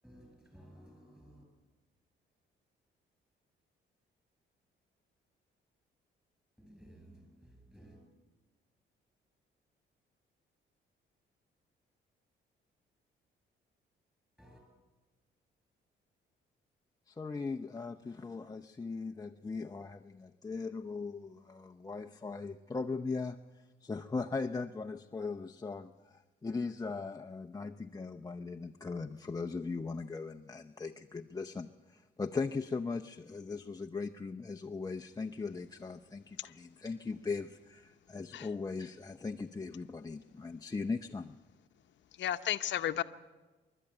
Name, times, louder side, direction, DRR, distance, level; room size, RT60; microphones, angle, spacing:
voice 1, 0.0-1.4 6.6-8.0 14.4-14.6, equal, 5° right, 7.6 m, -56 dB
voice 2, 17.1-41.4, left 4 dB, 20° left, 0.7 m, -39 dB
voice 3, 42.2-43.0, left 11 dB, 65° left, 0.9 m, -33 dB
26.0 x 12.0 x 8.9 m
cardioid pair, 90°, 20 cm